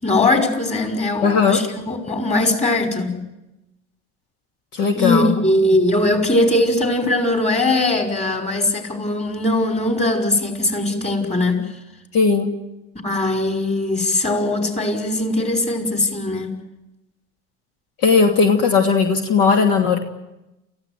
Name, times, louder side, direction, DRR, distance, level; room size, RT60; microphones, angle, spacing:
voice 1, 0.0-3.2 5.0-11.6 13.0-16.6, left 2 dB, 20° left, 4 dB, 5.4 m, -20 dB
voice 2, 1.2-1.6 4.7-5.4 12.1-12.5 18.0-20.0, left 5 dB, 65° left, 3 dB, 2.8 m, -17 dB
29.0 x 15.5 x 9.3 m, 0.97 s
hypercardioid pair, 80°, 35 cm